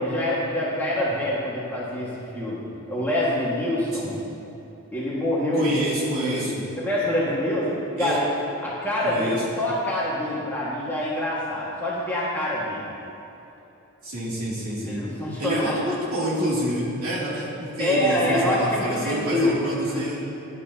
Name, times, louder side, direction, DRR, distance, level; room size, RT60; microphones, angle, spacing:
voice 1, 0.0-2.6 2.9-4.1 4.9-6.5 6.8-8.3 8.6-12.9 14.7-15.8 17.8-19.6 19.9-20.2, left 1 dB, 10° left, -8 dB, 1.8 m, -25 dB
voice 2, 5.5-6.6 8.0-8.2 9.0-9.4 14.0-15.0 15.4-20.2, equal, 90° right, -8 dB, 2.9 m, -28 dB
16.5 x 11.0 x 2.9 m, 2.9 s
head